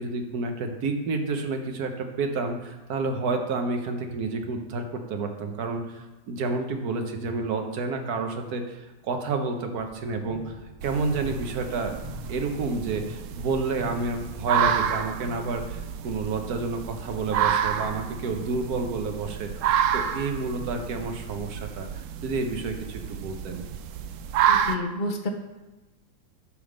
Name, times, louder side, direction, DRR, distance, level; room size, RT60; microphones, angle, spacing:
voice 1, 0.0-10.6 10.8-11.9 12.3-19.7 19.9-23.6, right 3 dB, 65° right, 5 dB, 1.4 m, -30 dB
sound 1, 9.8-14.8, left 2 dB, 25° right, 0.5 m, -44 dB
sound 2, 10.8-24.8, right 9 dB, 80° right, 0.7 m, -29 dB
voice 2, 24.5-25.3, left 2 dB, 35° left, 3 dB, 0.8 m, -29 dB
9.8 x 3.6 x 6.5 m, 1.1 s
omnidirectional pair, 1.9 m